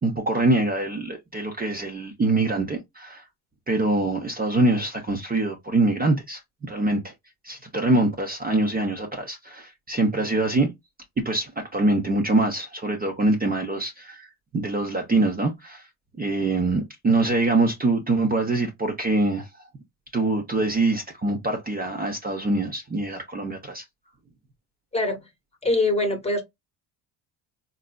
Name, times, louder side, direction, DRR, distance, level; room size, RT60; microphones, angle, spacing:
voice 1, 0.0-3.2 3.7-7.1 7.4-10.7 11.2-15.9 16.2-19.5 20.1-23.8, right 2 dB, 20° right, 0.7 m, -24 dB
voice 2, 24.9-25.3 25.6-26.4, left 2 dB, 15° left, 1.1 m, -23 dB
3.8 x 2.6 x 2.2 m
supercardioid pair, 100°, 43 cm